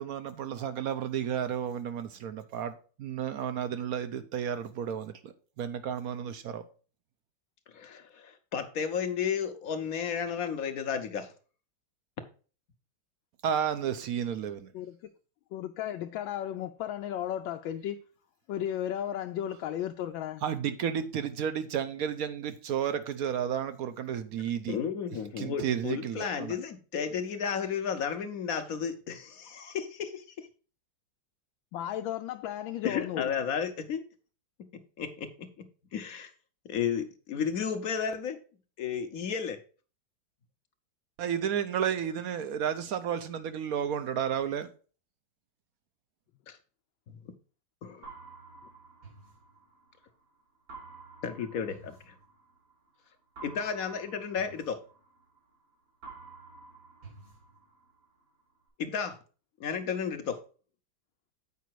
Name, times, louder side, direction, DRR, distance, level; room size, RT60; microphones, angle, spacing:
voice 1, 0.0-2.7 3.0-6.6 13.4-14.7 20.4-24.8 25.4-26.6 41.2-44.7, right 8 dB, 70° right, 0.9 m, -32 dB
voice 2, 7.7-11.3 24.7-30.5 32.8-34.0 34.7-36.3 36.6-38.4 38.8-39.6 46.5-46.6 47.8-48.1 51.2-52.1 53.4-54.8 58.8-59.2 59.6-60.4, left 7 dB, 60° left, 1.0 m, -33 dB
voice 3, 15.5-18.0 18.5-20.4 31.7-33.3, left 11 dB, 90° left, 1.3 m, -34 dB
sound 1, 48.0-50.1 50.7-52.8 53.4-55.6 56.0-58.1, right 4 dB, 85° right, 4.2 m, -50 dB
8.4 x 5.1 x 4.6 m
omnidirectional pair, 2.0 m